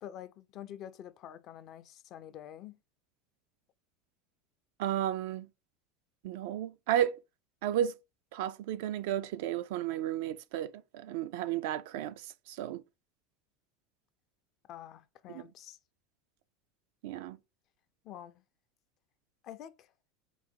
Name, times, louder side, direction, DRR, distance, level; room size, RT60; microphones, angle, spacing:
voice 1, 0.0-2.8 14.7-15.8 18.0-18.4 19.4-19.9, left 10 dB, 50° left, 0.4 m, -47 dB
voice 2, 4.8-5.5 6.2-7.2 7.6-8.0 8.3-12.8 15.3-15.4 17.0-17.4, right 11 dB, 65° right, 0.3 m, -33 dB
3.8 x 2.0 x 4.3 m
hypercardioid pair, 80°, 0 cm